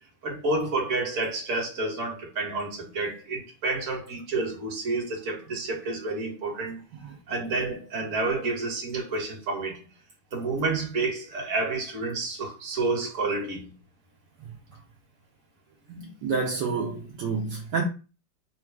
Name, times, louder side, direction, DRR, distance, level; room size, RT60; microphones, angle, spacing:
voice 1, 0.2-6.8 7.3-9.8 10.3-13.7, right 3 dB, 45° right, 1.5 m, -29 dB
voice 2, 15.9-17.8, right 4 dB, 70° right, 1.3 m, -29 dB
3.9 x 2.3 x 4.5 m
omnidirectional pair, 2.0 m